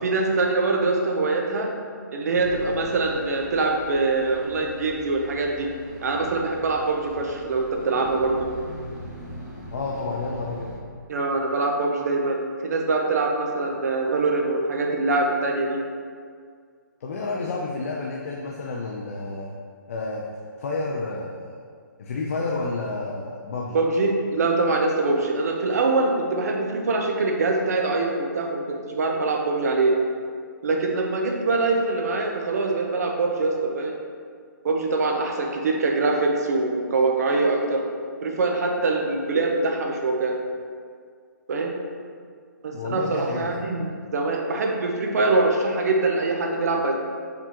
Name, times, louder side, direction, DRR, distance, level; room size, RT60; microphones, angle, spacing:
voice 1, 0.0-1.7 2.1-5.7 6.0-8.5 11.1-15.8 23.7-28.6 28.9-29.9 30.6-33.9 34.6-37.8 38.2-40.3 41.5-41.7 42.6-47.0, right 3 dB, 50° right, 1 dB, 0.7 m, -23 dB
sound 1, 2.3-10.8, right 1 dB, 15° right, 1.4 m, -41 dB
voice 2, 9.7-10.7 17.0-19.5 19.9-20.3 20.6-21.5 22.0-23.8 42.7-43.5, left 3 dB, 45° left, -2 dB, 0.4 m, -30 dB
4.7 x 3.6 x 2.9 m, 2.1 s
hypercardioid pair, 165°, 11 cm